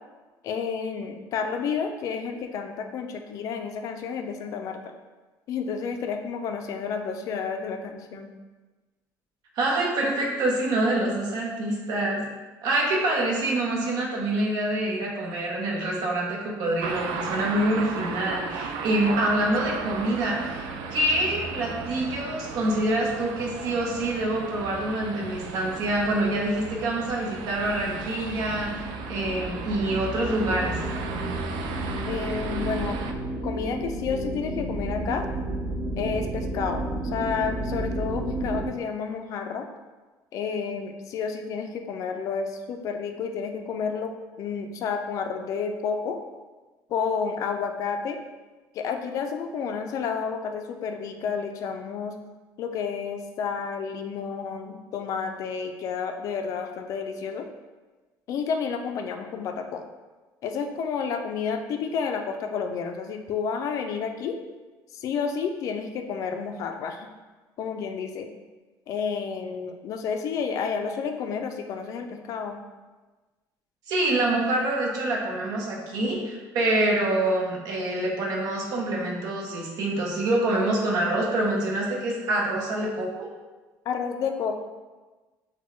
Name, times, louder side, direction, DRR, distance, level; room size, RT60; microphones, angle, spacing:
voice 1, 0.4-4.9 5.5-8.3 32.1-33.0 33.4-35.2 36.0-36.9 37.1-39.7 40.3-46.2 46.9-48.2 48.7-52.2 52.6-57.5 58.3-59.8 60.4-64.4 64.9-67.1 67.6-68.3 68.9-72.6 83.9-84.6, left 6 dB, 45° left, 6 dB, 0.4 m, -30 dB
voice 2, 9.6-12.2 12.6-30.8 73.9-83.3, right 1 dB, 60° right, -1 dB, 0.9 m, -26 dB
sound 1, 16.8-33.1, right 5 dB, 85° right, 0.4 m, -35 dB
sound 2, 27.5-38.7, right 1 dB, 30° right, 0.6 m, -32 dB
6.1 x 2.2 x 3.0 m, 1.3 s
cardioid pair, 175°, 8 cm